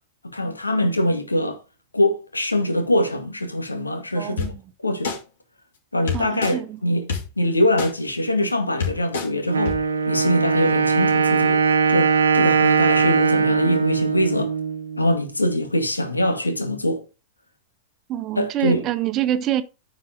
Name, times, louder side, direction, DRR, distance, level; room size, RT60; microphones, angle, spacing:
voice 1, 0.3-1.6 1.9-4.5 4.8-5.2 5.9-7.1 7.4-9.8 10.1-11.6 11.9-14.5 15.0-17.0 18.4-18.8, left 1 dB, 90° left, 1.8 m, -23 dB
voice 2, 4.2-4.6 6.1-6.8 18.1-19.6, right 12 dB, 35° right, 0.9 m, -25 dB
sound 1, 4.4-4.5 5.0-5.2 6.1-6.5 7.1-7.2 7.8-7.9 8.5-8.6 8.8-9.3 9.7-9.8, left 5 dB, 65° left, 3.7 m, -25 dB
Wind instrument woodwind instrument, 9.5-15.2, right 5 dB, 75° right, 1.1 m, -20 dB
9.6 x 5.0 x 4.9 m
figure-of-eight pair, 100°, 0 cm